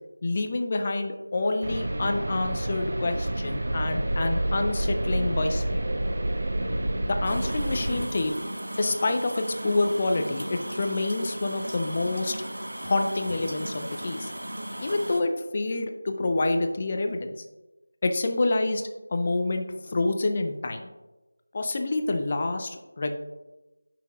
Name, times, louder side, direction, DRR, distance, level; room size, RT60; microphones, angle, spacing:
voice 1, 0.2-5.8 7.1-8.3 8.8-12.4 12.8-14.3 14.8-17.4 18.0-18.8 19.1-20.9 21.5-23.1, left 2 dB, 30° left, 5 dB, 0.7 m, -27 dB
sound 1, 1.6-8.1, right 1 dB, 50° right, 0.8 m, -28 dB
sound 2, 7.2-15.2, right 1 dB, 70° right, 1.0 m, -36 dB
13.5 x 6.0 x 2.5 m, 1.1 s
figure-of-eight pair, 170°, 0 cm